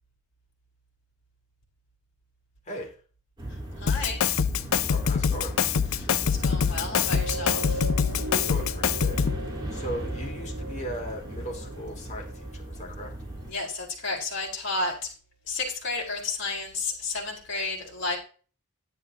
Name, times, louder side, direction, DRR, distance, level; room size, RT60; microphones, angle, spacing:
voice 1, 2.7-3.0 4.9-5.7 8.4-9.3 9.7-13.1, equal, 35° left, 0 dB, 3.1 m, -38 dB
sound 1, 3.4-13.5, right 1 dB, 20° right, 3.2 m, -37 dB
voice 2, 3.8-4.2 6.0-6.1 6.4-7.8 13.5-15.1 15.5-18.2, left 3 dB, 55° left, -1 dB, 4.7 m, -32 dB
Drum kit, 3.9-9.5, left 7 dB, 75° left, 0.5 m, -25 dB
sound 2, 6.2-12.9 13.5-13.6, right 2 dB, 65° right, 0.9 m, -39 dB
11.0 x 9.3 x 3.0 m, 0.39 s
head